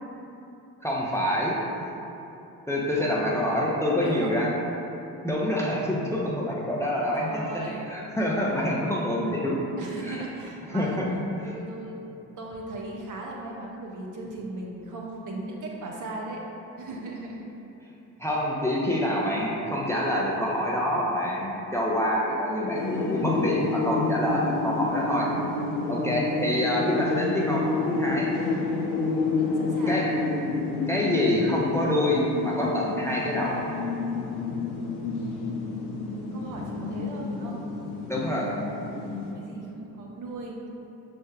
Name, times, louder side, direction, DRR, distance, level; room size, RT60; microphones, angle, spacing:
voice 1, 0.8-1.6 2.7-4.5 5.2-7.5 7.9-9.6 10.0-10.2 10.7-11.1 11.4-11.5 18.2-25.3 25.9-28.3 29.9-30.1 30.9-33.6 38.1-38.5, left 1 dB, 5° left, -5 dB, 0.6 m, -26 dB
voice 2, 3.0-3.5 4.0-4.3 7.2-8.0 9.8-11.0 11.5-11.9 12.4-16.4 16.8-17.4 29.4-30.0 36.3-37.6 39.3-40.6, right 2 dB, 45° right, -2 dB, 0.8 m, -37 dB
sound 1, 22.7-39.3, left 3 dB, 80° left, 0.6 m, -29 dB
6.2 x 3.4 x 2.3 m, 2.9 s
hypercardioid pair, 50°, 44 cm